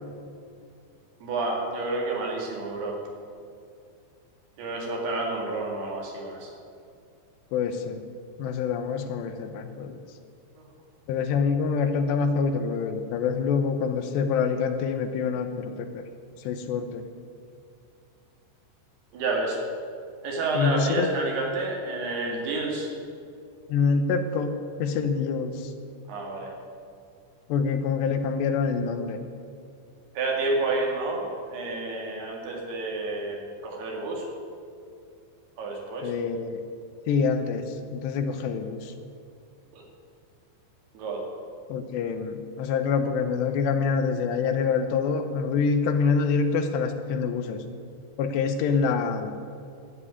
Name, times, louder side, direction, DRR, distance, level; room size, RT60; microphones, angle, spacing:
voice 1, 1.2-3.0 4.6-6.5 19.1-19.6 20.2-22.9 26.1-26.5 30.1-34.3 35.6-36.1 39.7-39.8 40.9-41.2, right 2 dB, 65° right, -1 dB, 4.0 m, -29 dB
voice 2, 7.5-8.0 8.4-10.0 11.1-16.0 16.4-17.0 20.6-21.1 23.7-25.7 27.5-29.2 36.0-36.6 37.1-38.9 41.7-47.6 48.2-49.3, left 5 dB, 80° left, 8 dB, 2.9 m, -26 dB
12.5 x 8.3 x 9.6 m, 2.4 s
omnidirectional pair, 5.1 m